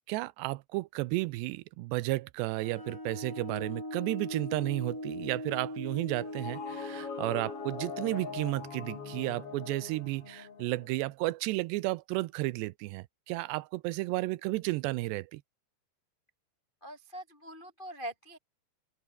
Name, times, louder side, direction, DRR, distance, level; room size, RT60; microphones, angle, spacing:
voice 1, 0.1-15.4, right 20 dB, 85° right, 2.8 m, -33 dB
sound 1, 2.5-9.9, left 1 dB, 5° left, 2.8 m, -42 dB
sound 2, 6.2-11.1, left 6 dB, 40° left, 3.1 m, -42 dB
voice 2, 16.8-18.4, right 1 dB, 60° left, 0.5 m, -43 dB
open air
omnidirectional pair, 4.9 m